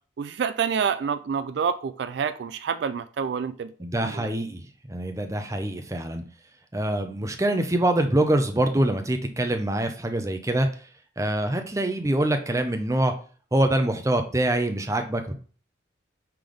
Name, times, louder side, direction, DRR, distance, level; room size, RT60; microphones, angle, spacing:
voice 1, 0.2-3.7 4.0-4.3, right 6 dB, 65° right, 0.3 m, -28 dB
voice 2, 3.8-6.2 6.7-10.7 11.2-13.1 13.5-15.3, right 1 dB, 15° right, 0.6 m, -25 dB
5.8 x 3.4 x 5.1 m
head